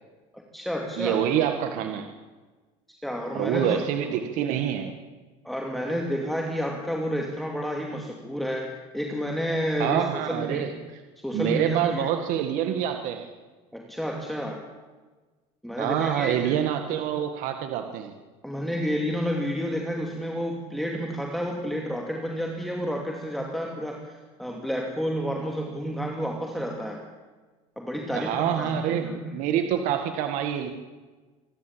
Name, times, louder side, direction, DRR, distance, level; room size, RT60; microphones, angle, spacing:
voice 1, 0.3-1.2 3.0-3.8 5.4-10.7 11.2-12.1 13.7-14.6 15.6-16.6 18.4-27.0 27.8-29.2, equal, ahead, 0 dB, 2.5 m, -30 dB
voice 2, 1.0-2.0 3.3-4.9 9.8-10.7 11.3-13.3 15.8-18.1 28.1-30.7, right 10 dB, 65° right, 6 dB, 1.9 m, -26 dB
26.0 x 12.5 x 8.8 m, 1.3 s
cardioid pair, 130°, 14 cm